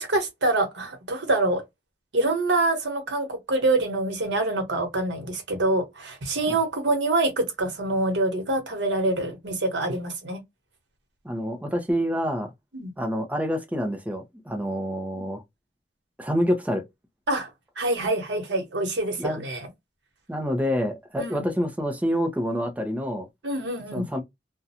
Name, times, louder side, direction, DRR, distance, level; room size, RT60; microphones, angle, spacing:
voice 1, 0.0-1.6 2.1-10.4 12.7-12.9 15.1-15.3 17.3-17.5 17.8-19.7 21.2-21.5 23.4-24.1, right 2 dB, 80° right, 1.0 m, -25 dB
voice 2, 11.2-12.5 13.0-15.4 16.2-16.8 19.2-19.4 20.3-23.3 23.9-24.2, equal, 10° right, 0.5 m, -27 dB
2.4 x 2.2 x 2.7 m
head